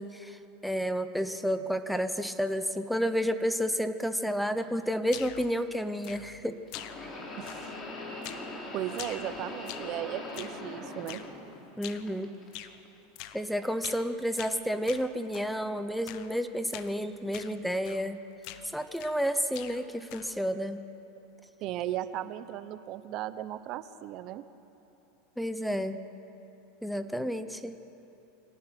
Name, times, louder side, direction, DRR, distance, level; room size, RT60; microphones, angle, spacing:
voice 1, 0.0-6.6 11.8-12.3 13.3-18.2 18.7-20.8 25.4-26.0 26.8-27.8, equal, ahead, 11 dB, 0.9 m, -31 dB
sound 1, 4.6-4.7 6.7-11.7 12.1-12.9 13.6-13.8 14.7-14.8, left 2 dB, 30° left, 4.0 m, -41 dB
sound 2, 5.1-5.5 6.0-6.4 6.7-7.2 7.5-7.9 8.2-8.5 8.9-10.0 10.3-10.6 11.1-11.3 11.8-12.1 12.5-12.8 13.2-13.4 13.8-14.1 14.4-15.5 16.1-16.3 16.7-16.9 17.3-17.6 17.8-18.1 18.4-19.2 19.5-20.4, left 13 dB, 55° left, 1.0 m, -45 dB
voice 2, 7.4-7.7 8.7-11.2 21.6-24.4, right 12 dB, 50° right, 13 dB, 0.8 m, -36 dB
24.0 x 18.0 x 6.2 m, 2.9 s
hypercardioid pair, 105°, 0 cm